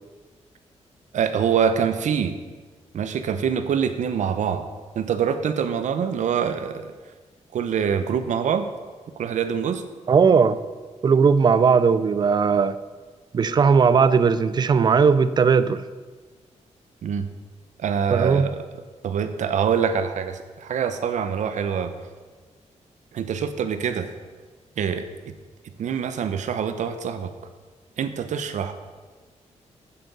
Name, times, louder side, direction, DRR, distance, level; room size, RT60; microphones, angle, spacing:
voice 1, 1.1-2.4 2.9-4.6 5.0-6.9 7.5-8.7 9.2-9.8 17.0-17.2 17.8-18.6 19.0-21.9 23.1-24.1 24.8-25.0 25.8-27.3 28.0-28.7, right 7 dB, 75° right, 9 dB, 0.8 m, -25 dB
voice 2, 10.1-10.6 11.0-12.8 13.3-15.8 18.1-18.5, right 5 dB, 35° right, 14 dB, 0.4 m, -18 dB
7.7 x 7.4 x 7.0 m, 1.4 s
wide cardioid pair, 170°, 12 cm